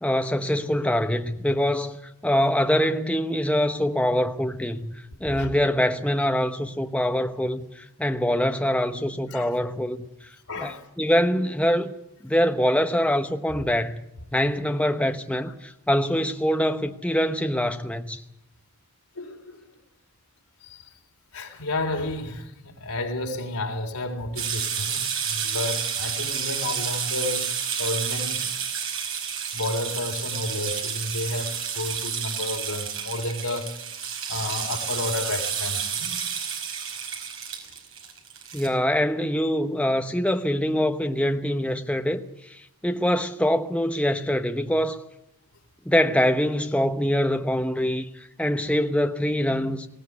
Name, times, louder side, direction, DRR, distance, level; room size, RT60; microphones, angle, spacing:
voice 1, 0.0-2.0 2.2-4.9 5.2-10.0 10.2-11.9 12.2-14.0 14.3-18.2 38.5-45.0 45.9-49.9, equal, 5° left, 0.9 m, -24 dB
voice 2, 10.5-10.8 19.2-19.6 20.6-20.8 21.3-27.5 27.8-28.5 29.5-33.8 34.3-36.3 36.8-36.9 37.5-37.7, left 2 dB, 85° left, 3.9 m, -31 dB
sound 1, 24.4-38.7, right 7 dB, 65° right, 5.3 m, -30 dB
19.5 x 17.5 x 9.7 m
head